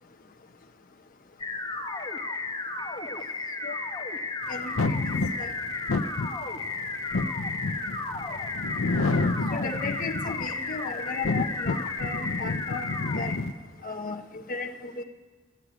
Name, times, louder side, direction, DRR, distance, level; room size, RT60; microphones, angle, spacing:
sound 1, 1.4-13.4, left 3 dB, 25° left, 1.2 m, -33 dB
voice 1, 4.5-5.5 9.5-12.8 13.2-13.3 13.8-15.0, left 4 dB, 45° left, 3 dB, 0.9 m, -35 dB
sound 2, 4.8-10.6 11.1-13.5, left 3 dB, 75° left, 0.7 m, -29 dB
13.0 x 10.0 x 9.3 m, 1.3 s
head